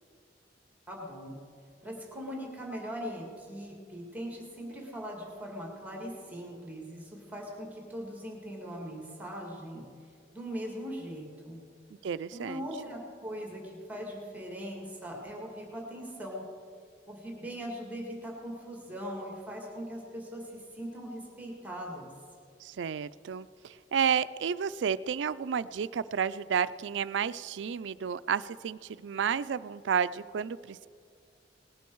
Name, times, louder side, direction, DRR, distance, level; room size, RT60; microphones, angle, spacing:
voice 1, 0.9-1.4 1.8-9.9 10.3-11.6 12.3-16.5 17.1-22.1, equal, 10° right, 0 dB, 1.9 m, -40 dB
voice 2, 12.0-12.7 22.6-30.9, right 7 dB, 85° right, 16 dB, 0.4 m, -31 dB
19.0 x 10.5 x 4.6 m, 2.3 s
head